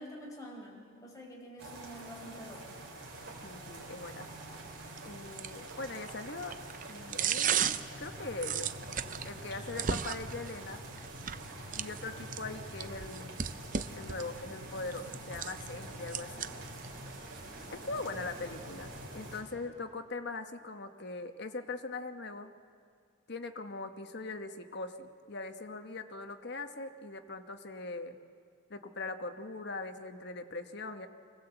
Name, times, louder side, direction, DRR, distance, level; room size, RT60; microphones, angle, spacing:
voice 1, 0.0-2.7, equal, 15° left, -2 dB, 4.5 m, -47 dB
sound 1, 1.6-19.4, right 1 dB, 55° right, 4.2 m, -46 dB
sound 2, 3.1-19.0, right 8 dB, 40° right, 0.5 m, -39 dB
voice 2, 3.4-4.3 5.0-6.5 6.9-8.8 9.2-10.8 11.8-13.5 14.0-16.5 17.7-22.5 23.3-28.2 28.7-31.1, left 3 dB, 55° left, 7 dB, 1.1 m, -41 dB
25.0 x 18.0 x 7.9 m, 2.2 s
head